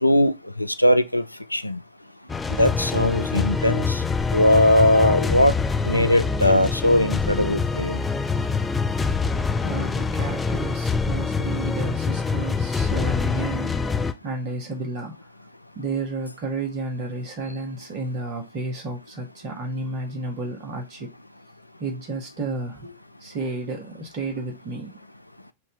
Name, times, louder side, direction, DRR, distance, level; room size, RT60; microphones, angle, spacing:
voice 1, 0.0-1.2 1.5-1.8 2.6-4.0 4.3-5.5 5.8-8.0, left 1 dB, 85° left, 0.3 m, -19 dB
sound 1, 2.3-14.1, left 4 dB, 15° left, 0.5 m, -25 dB
voice 2, 9.6-15.1 15.7-21.1 21.8-24.9, right 2 dB, 40° right, 1.5 m, -31 dB
4.6 x 2.7 x 3.6 m
figure-of-eight pair, 90°, 0 cm